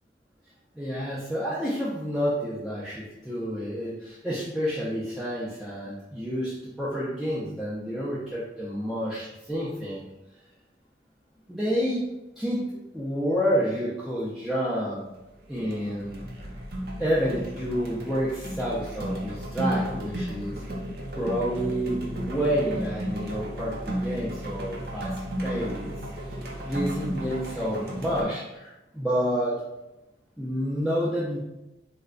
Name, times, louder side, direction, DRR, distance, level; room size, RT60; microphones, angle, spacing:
voice 1, 0.8-10.0 11.5-12.0 12.4-12.6 12.9-15.0 15.5-16.2 17.0-20.5 21.1-25.1 25.4-25.9 26.6-29.6 30.4-31.4, equal, ahead, -9 dB, 0.4 m, -29 dB
sound 1, 15.0-15.3 15.6-28.2, equal, 55° right, 0.6 m, -34 dB
3.2 x 2.1 x 3.7 m, 0.96 s
head